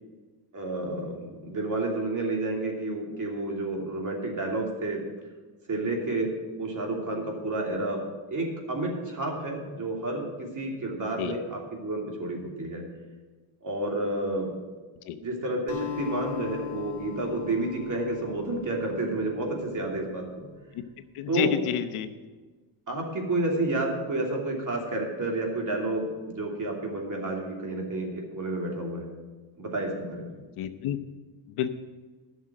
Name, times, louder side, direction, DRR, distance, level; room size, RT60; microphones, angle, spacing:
voice 1, 0.5-5.0 5.7-6.3 6.6-8.0 8.3-12.8 13.6-14.5 15.2-20.5 21.3-21.6 22.9-29.1 29.6-30.3, right 2 dB, 35° right, 0 dB, 3.0 m, -30 dB
Acoustic guitar, 15.7-20.2, left 9 dB, 60° left, 1.9 m, -39 dB
voice 2, 21.1-22.1 30.6-31.0 31.5-31.7, left 9 dB, 75° left, 10 dB, 0.9 m, -29 dB
11.0 x 6.4 x 7.6 m, 1.3 s
cardioid pair, 100°, 50 cm